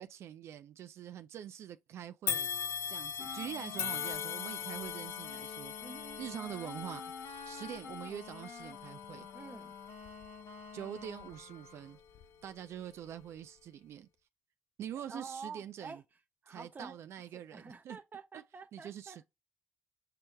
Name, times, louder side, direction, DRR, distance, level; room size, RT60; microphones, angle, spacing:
voice 1, 0.0-5.7 6.2-7.0 7.4-9.3 10.7-12.0 12.4-14.1 14.8-16.0 16.5-18.0 18.3-18.4 18.7-19.3, right 10 dB, 65° right, 0.3 m, -45 dB
sound 1, 2.3-11.6 12.1-12.3 13.2-13.3, left 8 dB, 55° left, 0.4 m, -41 dB
sound 2, 3.2-12.0, left 5 dB, 75° left, 0.9 m, -48 dB
voice 2, 5.8-6.2 9.3-9.7 15.1-16.0 16.4-17.0 17.5-19.2, right 4 dB, 40° right, 1.0 m, -47 dB
6.7 x 3.0 x 2.2 m
hypercardioid pair, 50°, 5 cm